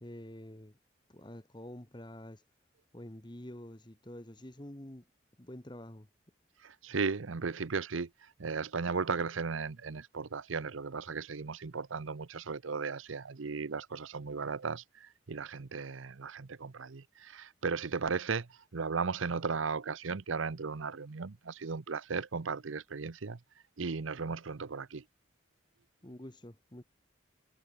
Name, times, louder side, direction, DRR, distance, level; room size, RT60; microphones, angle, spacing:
voice 1, 0.0-0.8 1.1-2.4 2.9-5.0 5.4-6.1 26.0-26.8, left 1 dB, 25° left, 1.4 m, -47 dB
voice 2, 6.6-23.4 23.8-25.0, right 5 dB, 85° right, 0.7 m, -36 dB
head